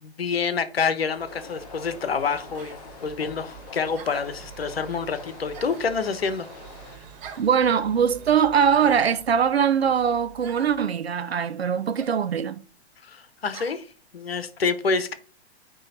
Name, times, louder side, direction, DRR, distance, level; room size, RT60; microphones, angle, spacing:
voice 1, 0.0-6.5 13.0-13.8 14.1-15.1, left 5 dB, 65° left, 1.1 m, -27 dB
sound 1, 1.1-1.3 2.5-2.8 3.9-4.4 5.5-5.9 7.2-7.5 8.7-9.1 10.4-10.8 11.9-12.2 13.5-13.8, right 6 dB, 25° right, 1.0 m, -43 dB
sound 2, 1.2-7.0, left 6 dB, 35° left, 1.0 m, -45 dB
sound 3, 1.2-10.8, right 7 dB, 40° right, 1.8 m, -47 dB
voice 2, 7.4-12.6, right 7 dB, 70° right, 0.7 m, -22 dB
9.2 x 3.2 x 4.1 m
figure-of-eight pair, 115°, 33 cm